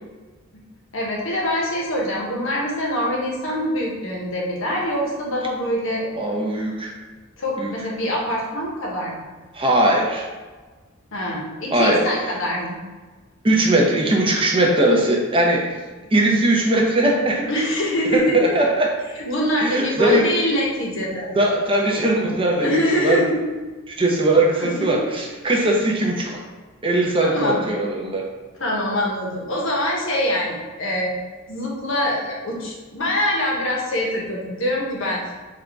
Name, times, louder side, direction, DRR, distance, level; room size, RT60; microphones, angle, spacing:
voice 1, 0.9-6.1 7.4-9.2 11.1-12.8 17.5-18.5 19.2-21.3 22.6-23.6 24.6-25.0 25.5-25.7 27.2-27.6 28.6-31.2 31.5-35.3, equal, 65° left, -2 dB, 1.1 m, -24 dB
voice 2, 6.1-6.9 7.6-7.7 9.5-10.3 11.7-12.0 13.4-15.7 16.1-17.5 18.1-18.9 19.6-20.3 21.3-23.2 23.9-26.4 26.8-28.3, right 1 dB, 25° right, -1 dB, 0.7 m, -19 dB
4.2 x 2.5 x 4.6 m, 1.3 s
head